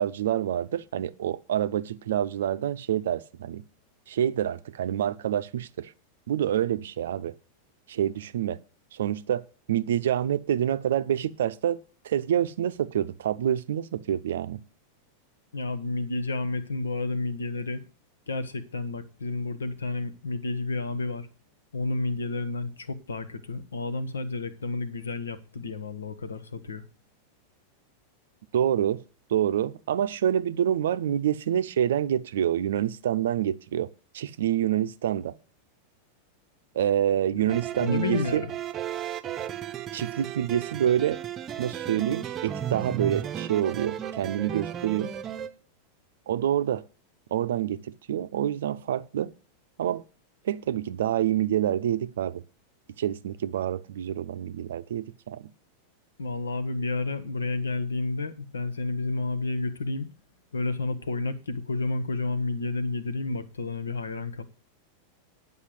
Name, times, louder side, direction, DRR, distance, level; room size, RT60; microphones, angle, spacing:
voice 1, 0.0-3.6 4.1-5.9 6.3-7.3 7.9-8.6 8.9-11.8 12.0-14.6 28.5-29.0 29.3-35.3 36.7-38.4 39.9-41.2 41.6-45.1 46.3-46.8 47.3-49.3 49.8-50.0 50.4-52.4 53.0-55.4, right 10 dB, 60° right, 0.6 m, -27 dB
voice 2, 15.5-17.8 18.3-21.3 21.7-26.8 37.3-38.5 56.2-60.1 60.5-64.4, left 3 dB, 70° left, 1.1 m, -31 dB
sound 1, 37.5-45.5, right 10 dB, 30° right, 0.8 m, -34 dB
9.8 x 5.5 x 7.8 m
figure-of-eight pair, 90°, 0 cm